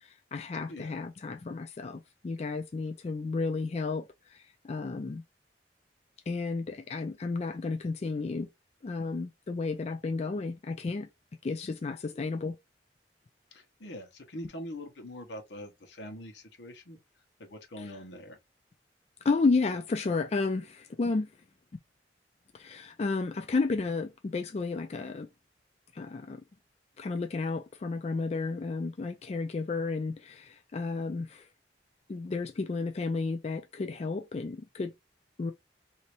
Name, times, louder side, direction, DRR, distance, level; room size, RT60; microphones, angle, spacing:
voice 1, 0.0-5.2 6.3-8.5 8.8-11.1 11.4-12.6 17.8-17.9 19.2-21.3 22.5-25.3 25.9-26.4 27.0-31.5 32.1-34.9 35.4-35.5, left 3 dB, 35° left, 0.4 m, -32 dB
voice 2, 13.5-17.0 17.4-18.4, left 1 dB, 85° left, 1.1 m, -43 dB
3.1 x 2.8 x 3.0 m
head